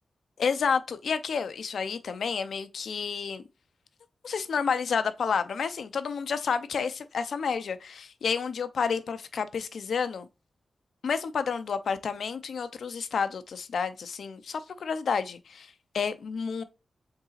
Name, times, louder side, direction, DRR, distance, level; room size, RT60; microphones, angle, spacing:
voice 1, 0.4-3.4 4.2-10.3 11.0-16.6, left 6 dB, 75° left, 0.6 m, -30 dB
5.3 x 3.9 x 2.4 m
wide cardioid pair, 145°, 0 cm